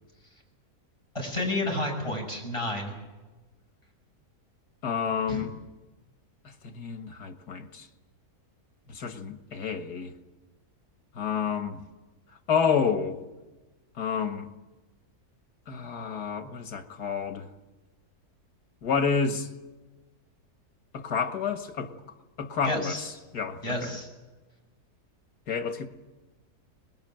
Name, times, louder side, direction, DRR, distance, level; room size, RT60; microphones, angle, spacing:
voice 1, 1.1-2.9 5.3-5.4 22.6-23.1 23.6-24.1, left 1 dB, 20° left, 7.1 m, -30 dB
voice 2, 4.8-5.5 6.4-7.9 8.9-10.1 11.2-11.8 12.5-13.2 14.0-14.5 15.7-17.5 18.8-19.5 20.9-21.9 22.4-23.0 23.3-24.0 25.5-25.9, left 6 dB, 90° left, 2.2 m, -29 dB
25.0 x 21.0 x 9.1 m
omnidirectional pair, 1.7 m